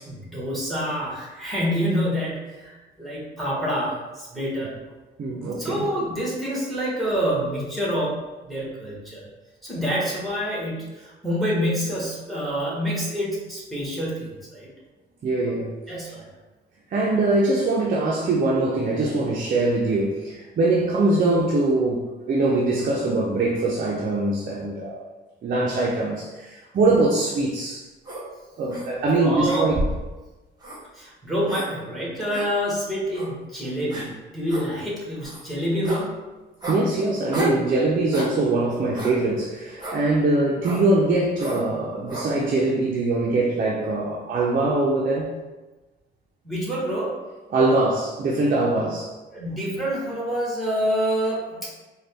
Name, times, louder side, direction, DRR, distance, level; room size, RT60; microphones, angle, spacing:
voice 1, 0.0-4.7 5.3-9.2 9.6-14.7 15.9-16.3 29.1-29.7 30.9-36.2 46.4-47.2 49.3-51.7, equal, ahead, -6 dB, 1.5 m, -27 dB
voice 2, 5.2-5.8 15.2-15.7 16.9-25.0 25.4-27.8 28.6-29.8 36.7-45.3 47.5-49.1, right 2 dB, 45° right, -3 dB, 0.6 m, -22 dB
sound 1, 28.0-28.2 28.7-28.9 29.4-30.0 30.6-30.8 31.5-31.7 32.3-32.5 33.1-33.3 33.9-34.1 34.5-34.7 35.2-35.4 35.8-36.0 36.6-36.8 37.3-37.6 38.1-38.3 39.0-39.2 39.8-40.0 40.6-40.8 41.4-41.6 42.1-42.3, equal, 20° right, 1.1 m, -30 dB
3.8 x 2.3 x 3.4 m, 1.2 s
cardioid pair, 90°, 20 cm